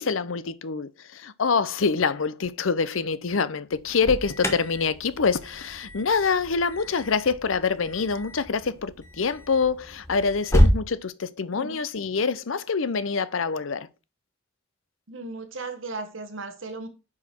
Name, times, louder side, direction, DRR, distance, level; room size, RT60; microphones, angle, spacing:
voice 1, 0.0-13.9, left 5 dB, 85° left, 0.7 m, -26 dB
Alarm, 3.7-10.8, equal, 15° left, 1.2 m, -28 dB
voice 2, 15.1-16.9, right 3 dB, 80° right, 1.4 m, -36 dB
9.5 x 4.9 x 4.5 m
head